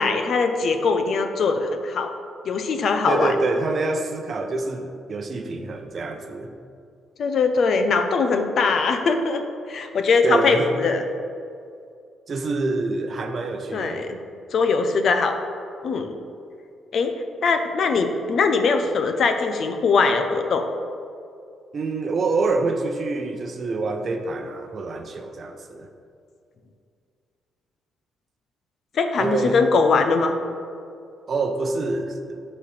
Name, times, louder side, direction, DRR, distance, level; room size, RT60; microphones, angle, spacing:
voice 1, 0.0-2.1 2.4-3.4 7.2-11.0 13.7-14.2 14.5-15.4 15.8-16.2 16.9-17.1 17.4-20.6 28.9-30.3, left 4 dB, 60° left, 6 dB, 0.6 m, -21 dB
voice 2, 3.1-6.5 10.2-10.7 12.3-14.1 21.7-25.9 29.2-29.6 31.3-32.4, right 3 dB, 45° right, 6 dB, 0.7 m, -26 dB
11.5 x 4.2 x 3.3 m, 2.4 s
cardioid pair, 90°, 0 cm